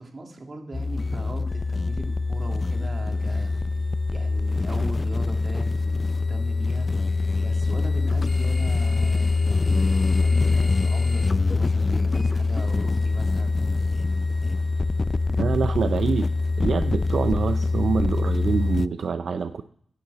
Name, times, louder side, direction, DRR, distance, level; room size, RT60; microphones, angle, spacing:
voice 1, 0.0-3.5 4.1-6.9 7.4-13.7, right 2 dB, 45° right, 2 dB, 2.6 m, -39 dB
sound 1, 0.7-18.9, left 3 dB, 40° left, 0.4 m, -24 dB
voice 2, 15.4-16.3 16.6-19.6, right 5 dB, 70° right, 10 dB, 0.5 m, -25 dB
10.0 x 6.6 x 7.9 m, 0.63 s
cardioid pair, 65°, 0 cm